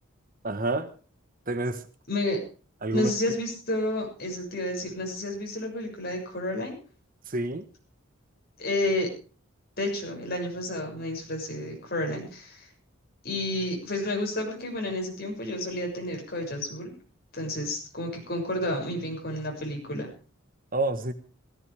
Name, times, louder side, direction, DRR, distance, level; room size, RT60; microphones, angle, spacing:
voice 1, 0.4-0.9 1.5-1.8 2.8-3.1 7.3-7.6 20.7-21.1, right 2 dB, 45° right, 10 dB, 1.3 m, -28 dB
voice 2, 2.1-2.4 2.9-6.8 8.6-9.1 9.8-12.7 13.2-16.9 17.3-20.1, left 1 dB, 50° left, 2 dB, 6.8 m, -30 dB
17.0 x 16.5 x 3.5 m, 0.37 s
head